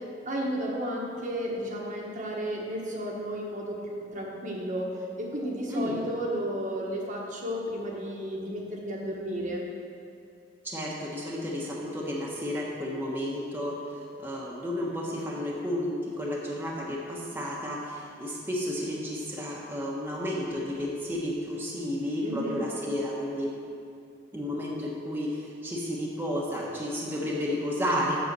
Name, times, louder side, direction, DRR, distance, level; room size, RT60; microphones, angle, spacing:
voice 1, 0.3-4.9 5.2-9.6 22.2-22.6, equal, 40° right, -2 dB, 1.4 m, -33 dB
voice 2, 5.7-6.0 10.6-23.5 24.3-28.3, equal, 10° right, -5 dB, 1.2 m, -32 dB
7.8 x 6.7 x 6.7 m, 2.5 s
head